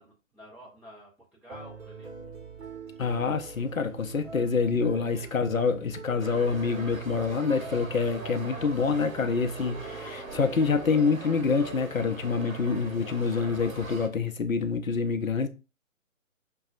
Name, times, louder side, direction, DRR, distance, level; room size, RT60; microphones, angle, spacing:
voice 1, 0.0-2.1 5.1-5.3 12.3-12.6, equal, 5° right, 0.8 m, -50 dB
sound 1, 1.5-13.6, right 4 dB, 55° right, 1.0 m, -44 dB
voice 2, 3.0-15.5, left 5 dB, 75° left, 0.6 m, -26 dB
sound 2, 6.2-14.1, right 3 dB, 90° right, 0.8 m, -42 dB
6.0 x 2.3 x 2.5 m
figure-of-eight pair, 135°, 40 cm